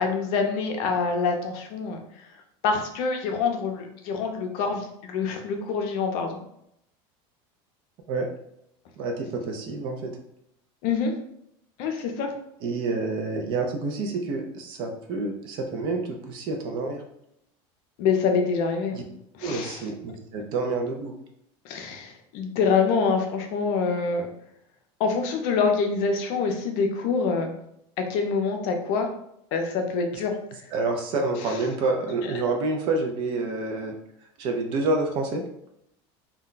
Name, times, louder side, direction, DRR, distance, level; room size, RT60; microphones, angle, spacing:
voice 1, 0.0-2.0 2.6-6.4 10.8-11.2 11.8-12.3 18.0-19.0 19.4-19.8 21.6-24.3 25.0-27.5 28.0-29.1 29.5-30.3 31.5-31.6 32.2-32.3, left 5 dB, 55° left, 4 dB, 0.5 m, -25 dB
voice 2, 9.0-10.1 12.6-17.0 18.9-19.0 19.4-21.1 30.7-34.0 34.4-35.4, right 3 dB, 40° right, 4 dB, 0.5 m, -28 dB
2.2 x 2.2 x 3.8 m, 0.76 s
cardioid pair, 170°, 13 cm